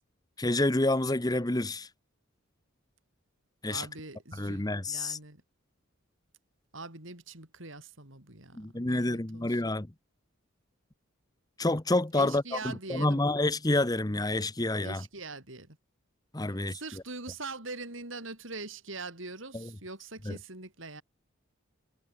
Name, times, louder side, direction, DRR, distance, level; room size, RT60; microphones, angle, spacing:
voice 1, 0.4-1.9 3.6-3.9 4.3-5.2 8.5-9.9 11.6-15.0 16.3-17.0 19.5-19.7 20.2-20.4, left 2 dB, 20° left, 0.9 m, -28 dB
voice 2, 3.7-5.4 6.7-9.6 12.1-13.2 14.8-15.8 16.7-21.0, right 3 dB, 65° right, 5.5 m, -43 dB
head